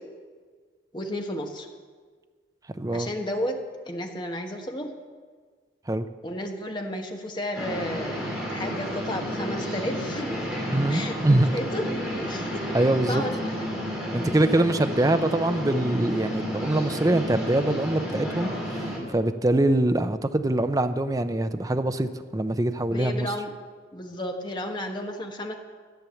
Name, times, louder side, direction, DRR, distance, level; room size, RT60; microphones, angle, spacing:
voice 1, 0.9-1.7 2.9-3.6 3.8-4.9 6.2-8.2 8.5-10.5 10.9-12.6 13.1-13.5 22.9-23.5 23.9-25.5, left 1 dB, 25° left, 2 dB, 1.3 m, -32 dB
voice 2, 2.8-3.1 5.9-6.1 10.7-11.5 12.7-13.2 14.1-23.3, right 1 dB, 20° right, 9 dB, 0.5 m, -24 dB
sound 1, 7.5-19.0, equal, 5° right, 3.2 m, -31 dB
14.0 x 8.4 x 7.1 m, 1.6 s
head